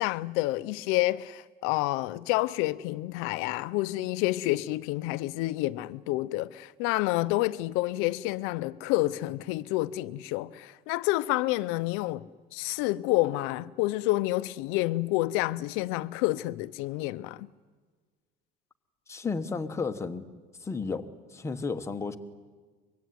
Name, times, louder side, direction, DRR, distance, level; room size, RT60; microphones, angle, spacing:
voice 1, 0.0-17.5, left 18 dB, 90° left, 0.8 m, -29 dB
voice 2, 19.1-20.2 20.6-22.2, left 4 dB, 15° left, 1.2 m, -33 dB
24.5 x 22.5 x 9.5 m
cardioid pair, 165°, 21 cm